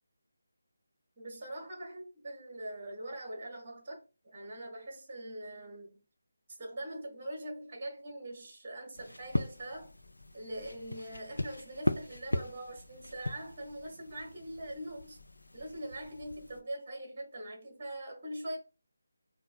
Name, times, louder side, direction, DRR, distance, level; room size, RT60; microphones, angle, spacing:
voice 1, 1.2-6.0 6.5-9.9 10.3-15.2 15.5-18.6, right 1 dB, 25° right, 1.2 m, -42 dB
sound 1, 8.9-16.6, left 1 dB, 70° left, 0.6 m, -38 dB
6.5 x 2.3 x 2.2 m
figure-of-eight pair, 155°, 0 cm